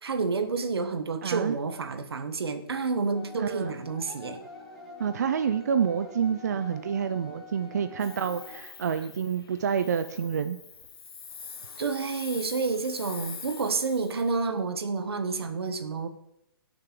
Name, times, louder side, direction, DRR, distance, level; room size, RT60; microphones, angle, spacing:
voice 1, 0.0-4.4 11.8-16.1, right 4 dB, 80° right, 1.3 m, -29 dB
voice 2, 1.2-1.6 3.4-3.7 5.0-10.6, right 7 dB, 45° right, 0.4 m, -28 dB
sound 1, 3.1-8.6, left 3 dB, ahead, 1.2 m, -46 dB
Hiss, 8.0-14.3, left 6 dB, 70° left, 1.3 m, -44 dB
16.5 x 6.6 x 3.8 m
hypercardioid pair, 175°, 13 cm